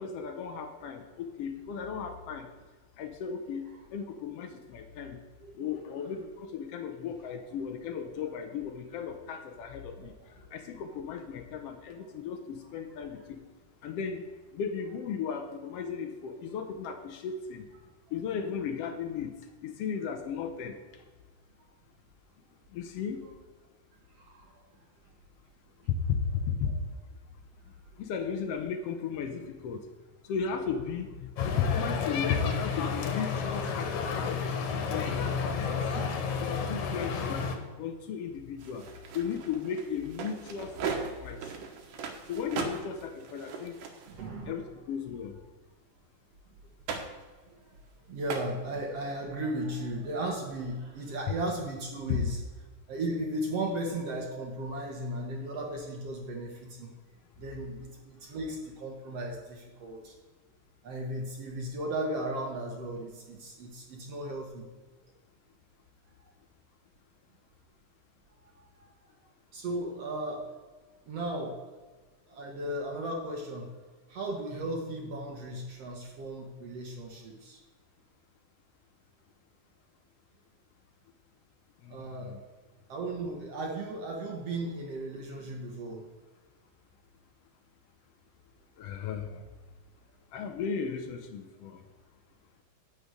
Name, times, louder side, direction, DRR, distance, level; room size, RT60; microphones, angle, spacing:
voice 1, 0.0-2.5 3.0-3.6 3.9-5.2 5.6-10.1 10.5-13.4 13.8-14.2 14.5-17.7 18.1-19.3 19.6-20.8 22.7-23.2 26.1-26.7 28.0-29.8 30.3-34.4 34.9-35.8 36.4-37.4 37.8-38.8 39.1-41.4 42.3-43.8 44.4-45.4 52.1-52.2 81.8-82.4 88.8-89.4 90.3-91.8, left 6 dB, 80° left, 4 dB, 1.4 m, -35 dB
voice 2, 24.1-24.8 35.2-35.4 35.9-36.3 43.6-43.7 44.1-44.7 47.5-47.8 48.1-52.4 52.9-56.9 57.4-60.1 60.8-64.7 68.4-68.9 69.5-70.5 71.1-71.8 72.3-73.7 74.1-77.6 81.9-82.4 82.9-86.0, right 1 dB, 60° right, 1 dB, 2.0 m, -36 dB
sound 1, 31.4-37.6, left 5 dB, 65° left, 2.5 m, -31 dB
sound 2, 38.6-44.2 46.9-47.2 48.3-48.5, right 5 dB, 75° right, 2.7 m, -38 dB
11.0 x 5.2 x 8.2 m, 1.4 s
omnidirectional pair, 3.8 m